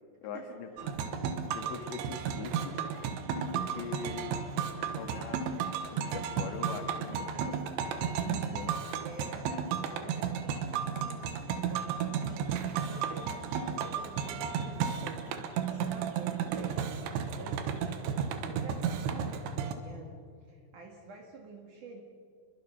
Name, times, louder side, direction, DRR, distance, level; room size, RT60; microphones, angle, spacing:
voice 1, 0.2-1.3 1.5-2.8 3.3-4.4 4.8-5.5 5.9-7.4 8.0-8.7, left 6 dB, 75° left, 5 dB, 3.8 m, -42 dB
sound 1, 0.8-19.7, right 7 dB, 80° right, 3.3 m, -33 dB
voice 2, 7.3-7.7 9.0-10.5 11.5-20.2 20.4-22.0, right 3 dB, 55° right, 2 dB, 2.7 m, -48 dB
28.5 x 22.0 x 5.6 m, 2.4 s
omnidirectional pair, 5.3 m